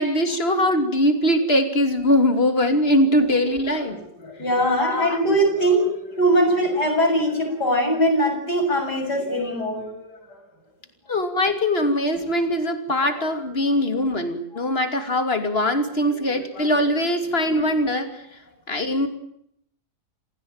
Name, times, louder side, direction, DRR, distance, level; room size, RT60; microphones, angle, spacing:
voice 1, 0.0-4.0 4.8-5.2 11.1-18.2 18.7-19.1, left 1 dB, 35° left, 7 dB, 3.1 m, -21 dB
voice 2, 4.2-10.2 16.3-16.7, right 1 dB, 85° left, 2 dB, 8.3 m, -22 dB
28.0 x 16.5 x 9.0 m, 0.72 s
omnidirectional pair, 1.7 m